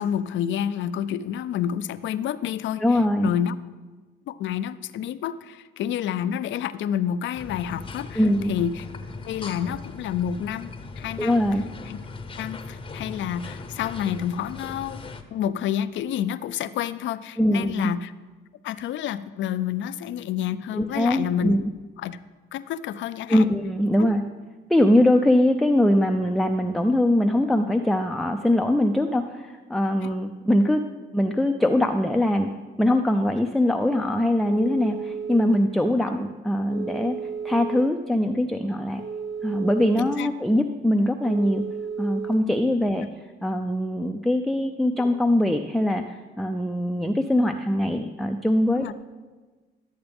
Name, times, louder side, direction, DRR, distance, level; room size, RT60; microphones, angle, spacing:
voice 1, 0.0-2.8 3.2-3.6 4.3-8.9 9.2-11.4 11.9-12.0 12.4-15.0 15.3-18.1 18.6-21.5 22.0-22.2 22.5-23.4 24.0-24.1 30.0-30.2 40.0-40.3 48.8-48.9, left 9 dB, 70° left, 14 dB, 0.4 m, -29 dB
voice 2, 2.8-3.3 8.2-8.5 11.2-11.6 17.4-17.9 20.8-21.7 23.3-24.2 24.7-30.8 31.1-32.5 32.8-37.1 37.4-39.0 39.4-41.6 42.0-43.1 43.4-48.9, left 1 dB, ahead, 3 dB, 0.4 m, -22 dB
sound 1, 7.3-15.2, left 3 dB, 25° left, 0.7 m, -39 dB
Telephone, 34.4-35.5 36.7-37.8 39.0-40.1 41.2-42.3, right 6 dB, 75° right, 3.0 m, -33 dB
12.0 x 7.9 x 3.4 m, 1.3 s
cardioid pair, 90°, 20 cm